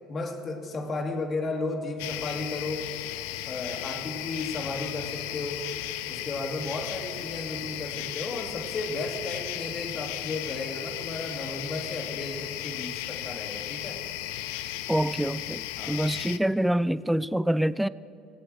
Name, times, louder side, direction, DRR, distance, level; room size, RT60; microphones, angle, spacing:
voice 1, 0.1-2.9 3.5-5.7 6.1-14.0 15.8-16.0, left 2 dB, 35° left, 2.1 m, -34 dB
sound 1, 2.0-16.4, left 14 dB, 70° left, 0.5 m, -35 dB
voice 2, 14.9-17.9, right 1 dB, 5° right, 0.4 m, -26 dB
18.0 x 8.7 x 6.2 m
hypercardioid pair, 65°, 0 cm